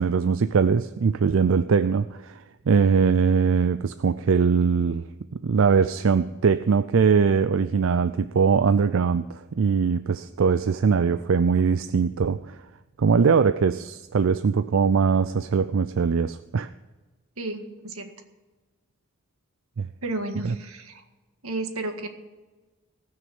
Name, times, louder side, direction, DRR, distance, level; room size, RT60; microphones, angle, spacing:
voice 1, 0.0-5.1 5.3-12.6 13.0-16.7 19.8-19.9 20.4-20.5, right 5 dB, 65° right, 12 dB, 0.4 m, -21 dB
voice 2, 17.4-18.1 20.0-21.0 21.4-22.1, right 2 dB, 85° right, 5 dB, 1.8 m, -32 dB
19.0 x 6.4 x 7.0 m, 1.2 s
head